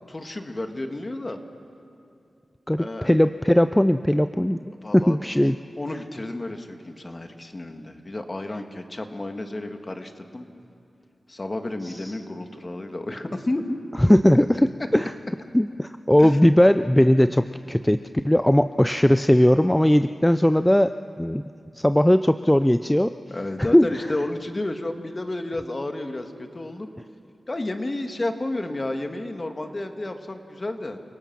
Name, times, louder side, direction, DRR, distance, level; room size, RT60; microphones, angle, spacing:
voice 1, 0.1-1.4 2.8-3.1 4.8-5.2 5.8-10.5 11.3-13.7 16.2-16.4 23.3-26.9 27.5-31.0, left 2 dB, 35° left, 6 dB, 1.8 m, -31 dB
voice 2, 2.7-4.6 4.9-5.6 11.8-12.1 14.0-14.6 14.9-15.1 15.5-18.0 18.2-20.9 21.2-21.4 21.7-23.1 23.6-23.9, left 1 dB, 10° left, 11 dB, 0.5 m, -18 dB
29.5 x 18.0 x 6.1 m, 2.6 s
cardioid pair, 60°, 0 cm